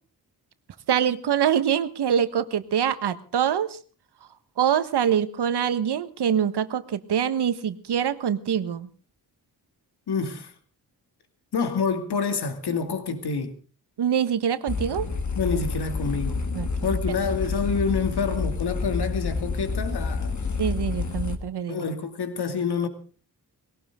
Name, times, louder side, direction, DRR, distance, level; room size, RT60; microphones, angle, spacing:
voice 1, 0.9-3.8 4.6-8.9 14.0-15.1 16.5-16.9 20.6-21.8, right 9 dB, 85° right, 1.4 m, -24 dB
voice 2, 10.1-10.5 11.5-13.5 15.3-16.4 16.8-20.4 21.7-22.9, left 5 dB, 75° left, 2.6 m, -27 dB
sound 1, 14.7-21.3, left 4 dB, 45° left, 2.3 m, -29 dB
21.0 x 17.5 x 3.7 m
wide cardioid pair, 135°, 39 cm